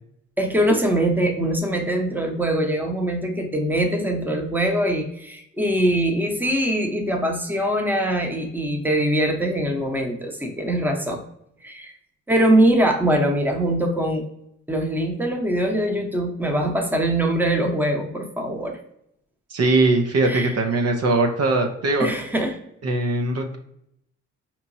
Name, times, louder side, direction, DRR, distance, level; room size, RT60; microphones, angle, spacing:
voice 1, 0.4-11.2 11.6-11.9 12.3-14.2 14.7-18.8 20.2-20.5 22.0-22.6, right 1 dB, 5° right, 2 dB, 0.9 m, -22 dB
voice 2, 19.5-22.1 22.8-23.6, right 2 dB, 55° right, 3 dB, 0.7 m, -21 dB
4.2 x 3.0 x 2.6 m, 0.75 s
supercardioid pair, 65°, 31 cm